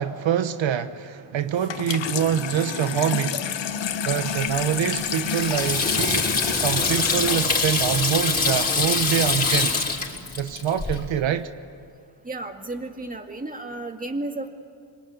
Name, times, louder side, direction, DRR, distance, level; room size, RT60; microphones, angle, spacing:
voice 1, 0.0-3.4 4.0-9.8 10.4-11.5, right 9 dB, 85° right, 1.1 m, -25 dB
Water tap faucet / Sink (filling or washing), 1.6-8.6, left 8 dB, 75° left, 1.4 m, -30 dB
Water tap faucet / Sink (filling or washing) 2, 4.2-11.0, left 4 dB, 20° left, 5.2 m, -25 dB
voice 2, 12.2-14.5, right 2 dB, 20° right, 2.2 m, -33 dB
26.0 x 23.5 x 9.6 m
cardioid pair, 105°, 44 cm